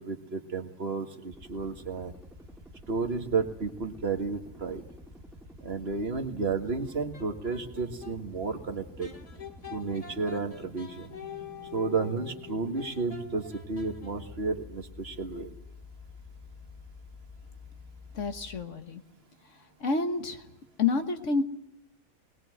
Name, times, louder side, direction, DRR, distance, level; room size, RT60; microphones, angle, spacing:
voice 1, 0.0-2.1 2.9-4.8 5.6-9.1 9.7-11.1 11.7-15.5, right 4 dB, 45° right, 4 dB, 1.9 m, -32 dB
sound 1, 1.3-18.6, left 2 dB, ahead, 2.3 m, -49 dB
sound 2, 6.8-8.2 9.0-14.5, left 7 dB, 25° left, 1.5 m, -45 dB
voice 2, 18.1-19.0 19.8-20.4 20.8-21.4, left 4 dB, 60° left, 6 dB, 1.6 m, -28 dB
21.5 x 20.5 x 7.9 m, 0.83 s
omnidirectional pair, 1.4 m